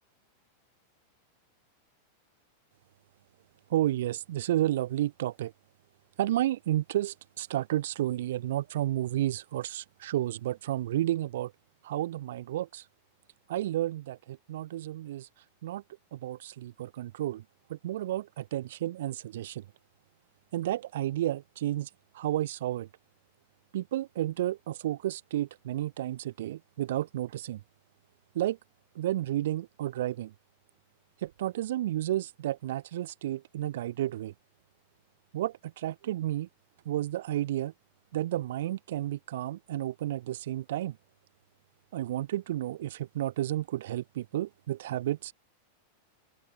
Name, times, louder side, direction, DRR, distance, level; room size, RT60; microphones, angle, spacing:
voice 1, 3.7-5.5 6.2-11.5 11.8-12.8 13.5-15.3 15.6-15.8 16.1-17.4 17.7-19.6 20.5-21.9 22.1-22.9 23.7-27.6 28.3-28.6 28.9-30.3 31.2-34.3 35.3-36.5 36.8-37.7 38.1-41.0 41.9-45.3, right 13 dB, 55° right, 1.2 m, -31 dB
open air
figure-of-eight pair, 90°, 0 cm